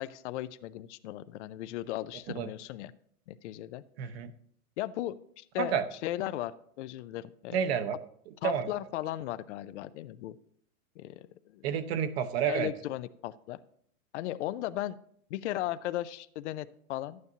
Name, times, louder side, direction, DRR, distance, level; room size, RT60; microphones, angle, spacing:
voice 1, 0.0-2.9 3.3-3.8 4.8-7.6 8.4-10.4 11.0-11.7 12.5-13.6 14.1-15.0 15.3-17.2, left 14 dB, 55° left, 14 dB, 0.5 m, -36 dB
voice 2, 4.0-4.3 5.6-5.9 7.5-7.9 8.4-8.7 11.6-12.7, right 8 dB, 45° right, 10 dB, 0.8 m, -29 dB
12.0 x 9.5 x 2.8 m, 0.64 s
hypercardioid pair, 140°, 43 cm